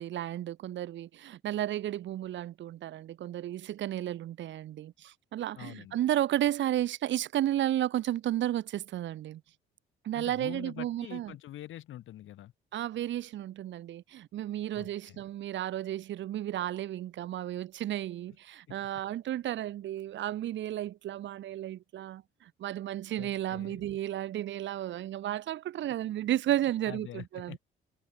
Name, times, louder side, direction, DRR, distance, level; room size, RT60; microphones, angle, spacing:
voice 1, 0.0-9.4 10.0-11.4 12.7-27.6, right 12 dB, 70° right, 1.0 m, -33 dB
voice 2, 5.6-6.0 10.1-12.5 14.7-15.2 23.2-23.8 26.8-27.6, left 13 dB, 80° left, 7.2 m, -45 dB
cardioid pair, 90°, 20 cm